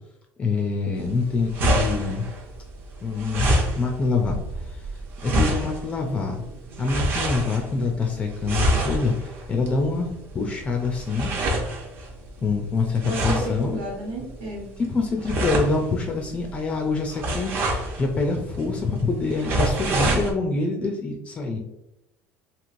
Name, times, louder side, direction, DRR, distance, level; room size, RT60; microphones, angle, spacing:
voice 1, 0.4-2.3 3.0-4.8 5.2-6.4 6.8-11.3 12.4-13.8 14.9-21.6, left 3 dB, 20° left, 2 dB, 0.3 m, -26 dB
sound 1, 0.9-20.3, right 1 dB, 40° right, 0.6 m, -28 dB
voice 2, 13.0-14.7, right 1 dB, 90° right, -2 dB, 1.3 m, -32 dB
3.0 x 2.8 x 2.5 m, 0.90 s
cardioid pair, 155°, 5 cm